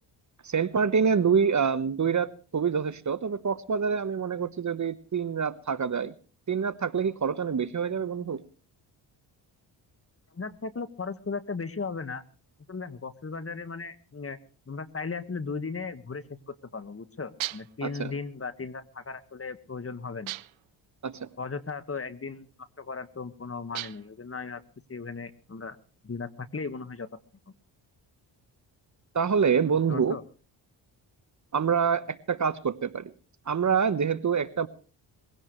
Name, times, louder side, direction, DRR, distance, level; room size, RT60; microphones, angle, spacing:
voice 1, 0.4-6.1 6.5-8.4 17.8-18.1 21.0-21.3 29.1-30.2 31.5-33.1 33.5-34.7, right 6 dB, 35° right, 1.1 m, -26 dB
voice 2, 10.3-12.2 12.7-14.4 14.7-20.3 21.4-22.5 22.8-24.6 24.9-25.8 26.0-27.1 29.9-30.2, left 4 dB, 30° left, 1.7 m, -36 dB
sound 1, 17.4-17.9 20.3-20.7 23.7-24.2, right 17 dB, 75° right, 0.7 m, -37 dB
22.0 x 17.0 x 3.2 m
supercardioid pair, 65°, 47 cm